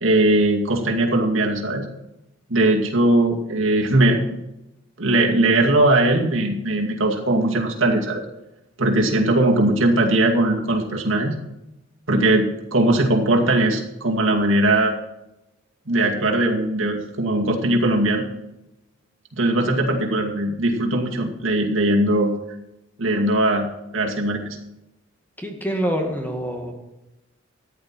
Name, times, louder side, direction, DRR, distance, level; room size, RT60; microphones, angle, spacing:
voice 1, 0.0-1.9 2.5-4.2 5.0-8.2 8.8-11.4 12.1-14.9 15.9-18.3 19.3-22.3 23.0-23.6 23.9-24.6, right 1 dB, 80° right, 1 dB, 2.3 m, -19 dB
voice 2, 25.4-26.7, equal, 10° left, 2 dB, 1.8 m, -26 dB
13.5 x 10.0 x 4.5 m, 0.93 s
head